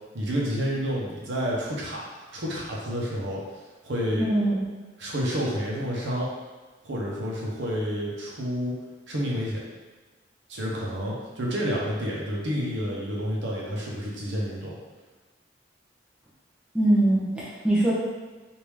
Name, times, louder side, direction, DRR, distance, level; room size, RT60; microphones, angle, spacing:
voice 1, 0.1-3.4 3.8-4.3 5.0-6.3 6.8-8.7 9.1-9.6 10.5-14.7, equal, 75° right, -4 dB, 0.8 m, -29 dB
voice 2, 4.2-4.6 16.7-17.9, right 1 dB, 5° right, -8 dB, 0.6 m, -22 dB
3.4 x 2.6 x 3.1 m, 1.3 s
head